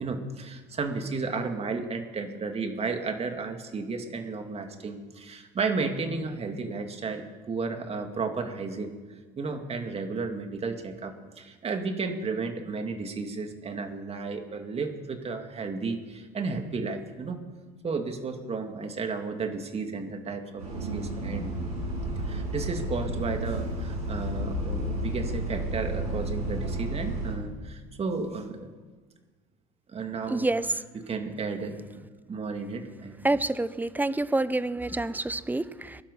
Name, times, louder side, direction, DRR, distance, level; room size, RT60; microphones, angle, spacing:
voice 1, 0.0-9.0 9.4-17.4 17.8-21.5 22.2-28.7 29.9-33.3, right 4 dB, 30° right, 6 dB, 2.4 m, -33 dB
Bus, 20.6-27.3, right 1 dB, 90° right, 7.1 m, -31 dB
voice 2, 30.3-30.6 33.2-36.0, right 2 dB, 10° right, 16 dB, 0.8 m, -27 dB
20.5 x 11.5 x 5.6 m, 1.4 s
hypercardioid pair, 80°, 19 cm